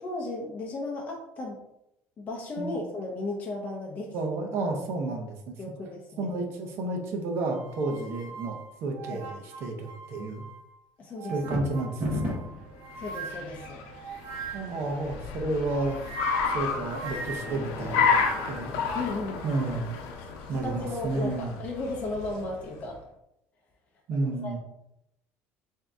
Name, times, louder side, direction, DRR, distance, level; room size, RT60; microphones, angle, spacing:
voice 1, 0.0-1.6 2.2-4.1 5.6-6.3 9.1-9.3 11.0-11.4 13.0-13.8 14.6-14.8 18.9-19.5 20.5-23.0 24.1-24.6, left 2 dB, 30° left, -2 dB, 0.6 m, -35 dB
voice 2, 4.1-5.6 6.2-10.4 11.3-12.4 14.5-16.0 16.5-18.7 19.4-20.0 20.5-21.6 24.1-24.6, right 2 dB, 50° right, 3 dB, 0.8 m, -31 dB
sound 1, 7.4-10.7 11.1-14.9 15.7-18.7, right 4 dB, 75° right, 1.1 m, -42 dB
sound 2, 11.3-12.6, equal, 30° right, 1.1 m, -30 dB
Car, 12.6-22.9, left 5 dB, 85° left, 0.7 m, -31 dB
3.7 x 2.7 x 3.5 m, 0.82 s
cardioid pair, 145°, 6 cm